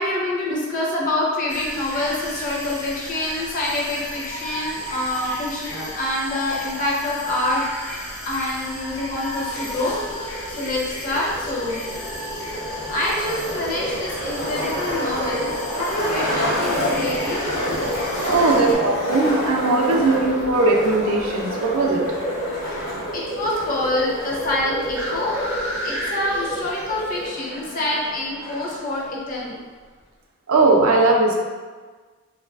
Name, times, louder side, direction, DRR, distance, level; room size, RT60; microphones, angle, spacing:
voice 1, 0.0-7.6 8.3-11.9 12.9-17.8 18.4-18.5 22.6-25.4 25.7-29.6, left 1 dB, 40° left, -4 dB, 0.6 m, -26 dB
sound 1, 1.5-18.7, left 1 dB, 85° left, 0.7 m, -34 dB
sound 2, 9.5-27.3, equal, 10° right, 0.5 m, -32 dB
Skateboard, 11.9-28.9, left 1 dB, 60° left, 0.9 m, -30 dB
voice 2, 18.3-22.0 30.5-31.4, right 3 dB, 70° right, 0 dB, 0.4 m, -19 dB
3.0 x 2.3 x 2.3 m, 1.4 s
head